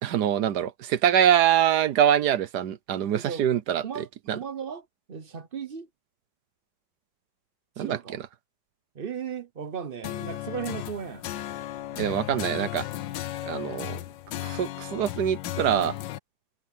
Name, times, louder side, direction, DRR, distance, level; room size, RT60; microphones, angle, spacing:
voice 1, 0.0-4.4 7.8-8.0 12.0-12.8 13.5-14.0 14.4-16.0, right 10 dB, 65° right, 1.3 m, -24 dB
voice 2, 3.1-3.5 3.8-5.9 7.8-8.2 8.9-11.3, right 7 dB, 50° right, 0.6 m, -36 dB
sound 1, 10.0-16.2, left 14 dB, 75° left, 1.4 m, -35 dB
omnidirectional pair, 2.1 m